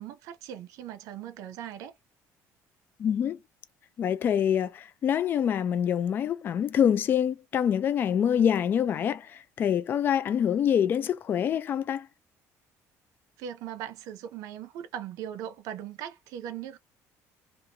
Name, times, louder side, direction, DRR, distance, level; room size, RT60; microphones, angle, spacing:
voice 1, 0.0-1.9 13.4-16.8, right 10 dB, 70° right, 0.6 m, -39 dB
voice 2, 3.0-3.4 4.0-12.1, left 9 dB, 35° left, 0.3 m, -26 dB
2.6 x 2.4 x 2.8 m
cardioid pair, 160°, 6 cm